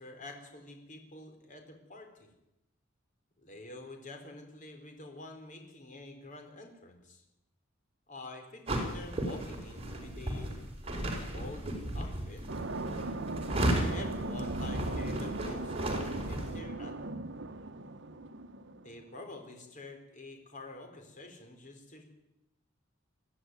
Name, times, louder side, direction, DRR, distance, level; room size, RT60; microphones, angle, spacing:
voice 1, 0.0-2.3 3.4-7.2 8.1-10.6 11.2-12.4 13.5-17.0 18.8-22.0, left 2 dB, 40° left, 4 dB, 4.6 m, -48 dB
sound 1, 8.7-16.6, right 1 dB, 30° right, 4.9 m, -35 dB
sound 2, 12.5-18.9, right 2 dB, 60° right, 1.1 m, -38 dB
22.5 x 14.5 x 9.7 m, 0.90 s
head